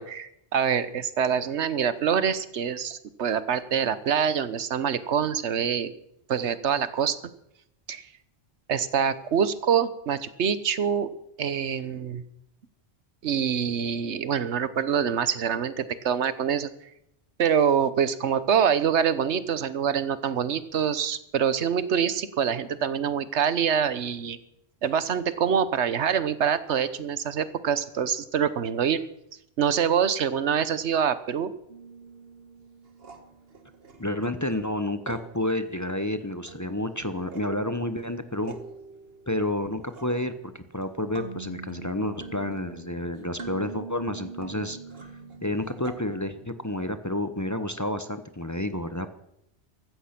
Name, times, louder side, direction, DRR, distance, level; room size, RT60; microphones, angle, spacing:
voice 1, 0.0-5.9 6.3-7.2 7.9-8.1 8.7-11.1 11.4-12.2 13.2-16.7 17.4-24.4 24.8-29.0 29.6-31.5, right 7 dB, 85° right, 14 dB, 1.2 m, -25 dB
sound 1, 31.7-46.9, right 4 dB, 60° right, 1.9 m, -44 dB
voice 2, 34.0-38.6 39.3-44.8 45.4-49.1, left 1 dB, 15° left, 10 dB, 0.8 m, -30 dB
15.5 x 14.0 x 5.9 m, 0.79 s
omnidirectional pair, 1.1 m